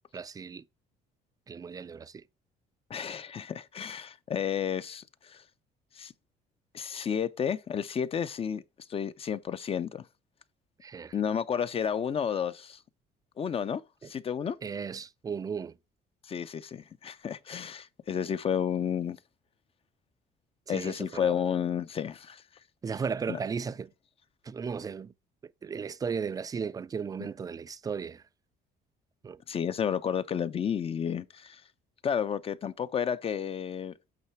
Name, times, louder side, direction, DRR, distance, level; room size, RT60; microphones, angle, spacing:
voice 1, 0.1-0.6 1.5-2.2 10.8-11.1 14.6-15.8 20.7-21.4 22.8-23.9 24.4-25.1 25.6-28.2 29.2-29.4, right 6 dB, 20° right, 0.4 m, -35 dB
voice 2, 2.9-5.4 6.0-6.1 6.7-8.6 8.9-10.0 11.1-12.8 13.4-14.6 16.3-19.2 20.7-22.4 23.3-23.4 29.5-31.6 32.0-34.0, left 8 dB, 35° left, 0.5 m, -31 dB
8.5 x 3.3 x 4.4 m
cardioid pair, 110°, 17 cm